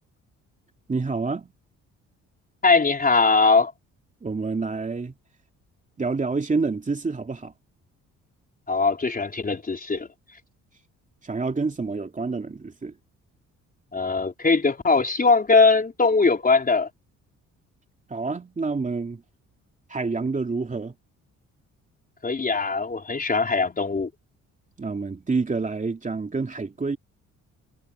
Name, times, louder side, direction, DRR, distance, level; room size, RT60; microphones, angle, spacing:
voice 1, 0.9-1.5 4.2-5.1 6.0-7.5 11.2-12.9 18.1-19.2 19.9-20.9 24.8-27.0, right 4 dB, 25° right, 2.7 m, -28 dB
voice 2, 2.6-3.7 8.7-10.1 13.9-16.9 22.2-24.1, left 4 dB, 30° left, 4.1 m, -20 dB
cardioid pair, 90°, 30 cm